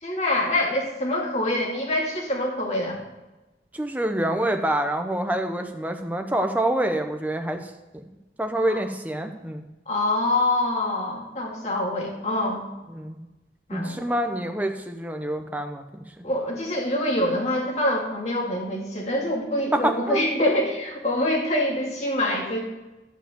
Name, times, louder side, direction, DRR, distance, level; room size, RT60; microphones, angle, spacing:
voice 1, 0.0-3.0 9.9-12.6 13.7-14.0 16.2-22.6, left 1 dB, 40° left, -1 dB, 2.6 m, -25 dB
voice 2, 3.7-7.6 7.9-8.0 8.4-9.6 12.9-13.3 13.7-15.8 19.7-20.2, right 1 dB, 10° right, 5 dB, 0.9 m, -26 dB
11.5 x 4.9 x 7.7 m, 1.1 s
head